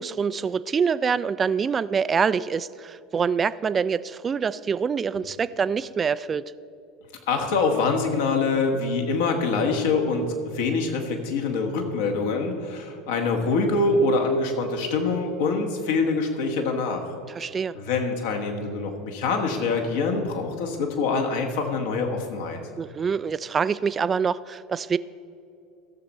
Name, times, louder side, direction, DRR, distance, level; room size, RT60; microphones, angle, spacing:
voice 1, 0.0-6.4 17.4-17.7 22.8-25.0, right 6 dB, 30° right, 16 dB, 0.3 m, -25 dB
voice 2, 7.3-17.1 17.7-22.6, left 3 dB, 65° left, 3 dB, 1.4 m, -25 dB
14.5 x 7.0 x 4.3 m, 2.6 s
figure-of-eight pair, 75°, 0 cm